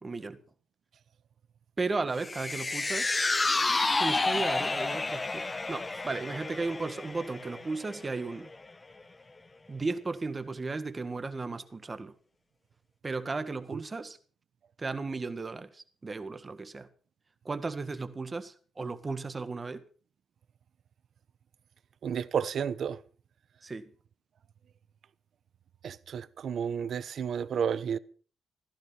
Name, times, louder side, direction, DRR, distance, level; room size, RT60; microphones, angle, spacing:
voice 1, 0.0-0.4 1.8-3.2 3.8-8.5 9.7-12.1 13.0-14.2 14.8-16.9 17.5-19.8 23.6-23.9, right 3 dB, 25° right, 1.8 m, -35 dB
sound 1, 2.2-8.7 9.0-9.1, left 3 dB, 20° left, 0.7 m, -30 dB
voice 2, 22.0-23.0 25.8-28.0, right 7 dB, 55° right, 1.0 m, -31 dB
16.0 x 14.5 x 5.8 m
cardioid pair, 145°, 0 cm